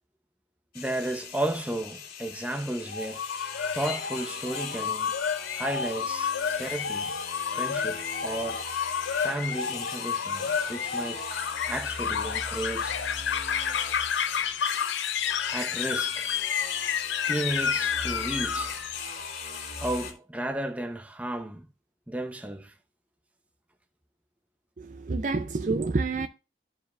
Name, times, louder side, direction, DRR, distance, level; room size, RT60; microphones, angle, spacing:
sound 1, 0.7-20.1, left 5 dB, 50° left, 2.4 m, -38 dB
voice 1, 0.7-3.2 3.7-5.2 5.5-7.1 7.5-8.7 9.2-11.2 11.7-13.0 15.5-16.3 17.3-18.8 19.8-21.6 22.1-22.7, right 1 dB, 10° right, 0.7 m, -33 dB
sound 2, 2.9-19.4, left 7 dB, 85° left, 0.5 m, -31 dB
voice 2, 24.8-26.3, right 3 dB, 45° right, 0.4 m, -28 dB
14.0 x 4.8 x 2.4 m
head